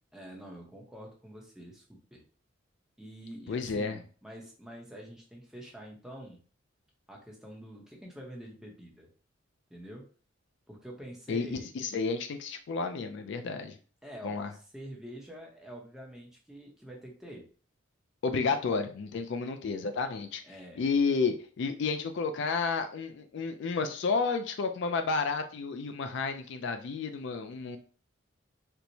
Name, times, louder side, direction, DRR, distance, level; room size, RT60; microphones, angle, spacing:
voice 1, 0.1-2.2 3.0-6.4 7.1-9.1 9.7-10.1 10.7-11.7 14.0-17.5 20.4-20.8, equal, 5° right, -1 dB, 0.7 m, -46 dB
voice 2, 3.5-4.0 11.3-13.8 14.2-14.5 18.2-20.4 20.8-27.8, left 4 dB, 60° left, 7 dB, 0.3 m, -31 dB
4.3 x 2.1 x 2.7 m, 0.40 s
head